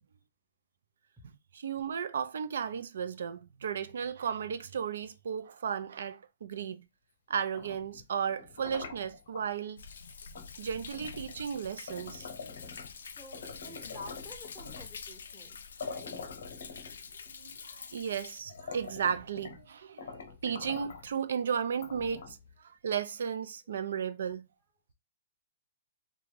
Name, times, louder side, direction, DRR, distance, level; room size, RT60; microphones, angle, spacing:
voice 1, 1.5-6.8 7.3-9.8 10.6-12.3 17.4-24.5, right 7 dB, 70° right, 0.4 m, -35 dB
sound 1, 7.4-9.5 10.3-10.5 10.9-13.0 13.3-15.0 15.5-15.6 15.8-17.3 18.0-18.1 18.4-19.7 20.0-21.1 21.7-22.5, left 5 dB, 65° left, 0.8 m, -45 dB
Thunder, 9.8-18.4, left 5 dB, 85° left, 0.4 m, -47 dB
voice 2, 13.2-16.2, left 2 dB, ahead, 0.6 m, -50 dB
2.4 x 2.2 x 3.2 m
hypercardioid pair, 165°, 0 cm